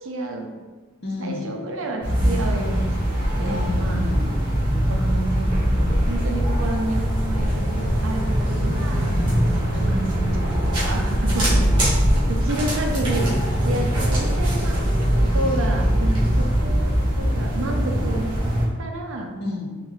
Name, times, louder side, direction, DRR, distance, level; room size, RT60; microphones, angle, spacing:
voice 1, 0.0-0.5 1.2-4.1 4.9-9.1 9.8-11.6 12.3-13.3 13.6-14.8 15.2-18.5 18.8-19.3, right 2 dB, 60° right, 2 dB, 0.6 m, -30 dB
voice 2, 1.0-1.5 3.4-4.3 9.1-9.5 11.3-12.3 19.4-19.7, left 2 dB, 50° left, -1 dB, 0.7 m, -32 dB
sound 1, 2.0-18.6, equal, 20° right, 1.2 m, -21 dB
3.7 x 3.2 x 3.1 m, 1.3 s
head